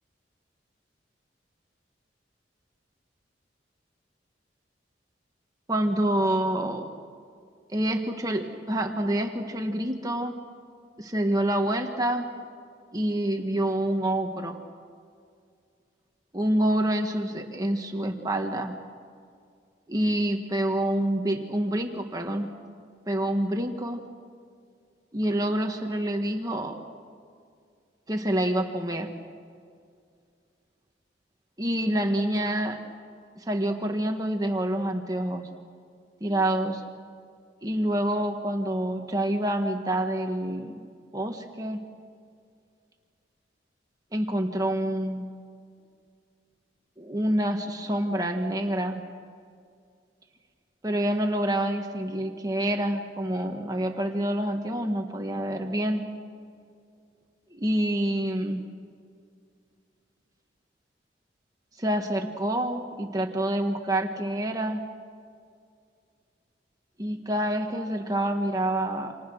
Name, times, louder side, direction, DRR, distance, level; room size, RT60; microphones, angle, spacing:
voice 1, 5.7-6.9 7.7-10.4 11.0-12.3 12.9-14.6 16.3-18.8 19.9-22.5 23.1-24.1 25.1-26.8 28.1-29.1 31.6-32.8 33.3-35.5 36.2-36.8 37.6-40.7 41.1-41.8 44.1-45.3 47.0-49.1 50.8-56.1 57.5-58.7 61.8-64.8 67.0-69.1, right 1 dB, 20° right, 3 dB, 1.6 m, -27 dB
29.5 x 27.5 x 6.4 m, 2.2 s
head